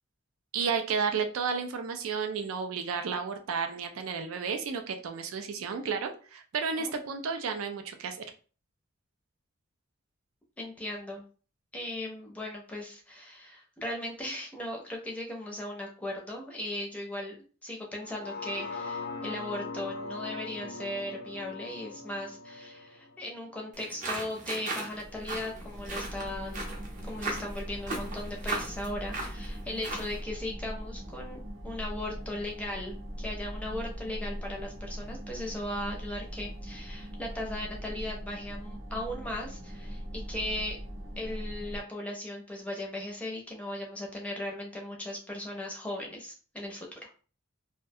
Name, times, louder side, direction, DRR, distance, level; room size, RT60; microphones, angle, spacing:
voice 1, 0.5-8.2, right 5 dB, 90° right, 6 dB, 0.4 m, -32 dB
voice 2, 10.6-11.2 11.7-17.4 17.6-26.7 27.0-40.8 41.2-47.1, left 1 dB, 5° left, -1 dB, 0.5 m, -38 dB
sound 1, 18.0-24.1 24.6-24.7, left 3 dB, 65° left, 0.4 m, -41 dB
sound 2, 23.7-30.2, right 2 dB, 40° right, 0.7 m, -38 dB
sound 3, 24.9-41.8, equal, 70° right, 0.8 m, -41 dB
2.3 x 2.1 x 2.6 m, 0.39 s
head